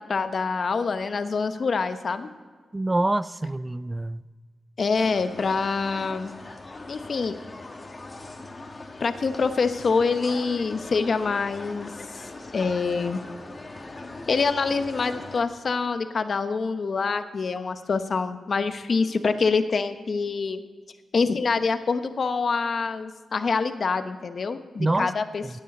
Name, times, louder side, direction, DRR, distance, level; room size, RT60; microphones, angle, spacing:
voice 1, 0.1-2.3 4.8-6.3 6.9-7.3 9.0-11.9 12.5-13.2 14.3-20.6 21.1-25.6, left 4 dB, 55° left, 0.9 m, -25 dB
voice 2, 2.7-4.2 24.8-25.1 25.4-25.6, right 2 dB, 20° right, 0.3 m, -26 dB
sound 1, 5.0-15.4, left 2 dB, 35° left, 1.4 m, -40 dB
16.5 x 9.2 x 4.2 m
cardioid pair, 70°, 0 cm